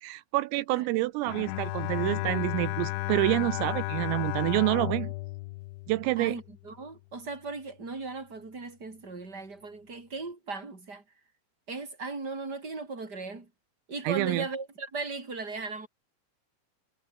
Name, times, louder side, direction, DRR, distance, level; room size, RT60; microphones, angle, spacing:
voice 1, 0.0-5.1 5.9-6.4 14.1-14.5, right 19 dB, 85° right, 3.4 m, -28 dB
Bowed string instrument, 1.3-6.6, left 22 dB, 90° left, 2.6 m, -33 dB
voice 2, 6.2-11.0 11.7-13.5 13.9-15.9, right 3 dB, 20° right, 5.8 m, -37 dB
omnidirectional pair, 6.0 m